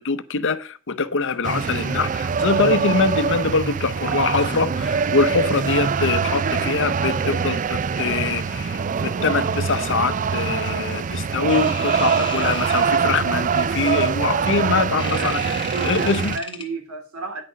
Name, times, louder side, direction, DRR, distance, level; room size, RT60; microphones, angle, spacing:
voice 1, 0.0-15.4 15.8-16.3, left 4 dB, 60° left, 0.8 m, -23 dB
sound 1, 1.4-16.4, right 6 dB, 35° right, 0.4 m, -23 dB
sound 2, 4.3-4.9 6.3-7.2 11.5-12.9 15.0-16.6, left 5 dB, 25° left, 1.7 m, -35 dB
voice 2, 15.2-17.4, right 3 dB, 85° right, 2.8 m, -32 dB
9.7 x 6.1 x 5.2 m
head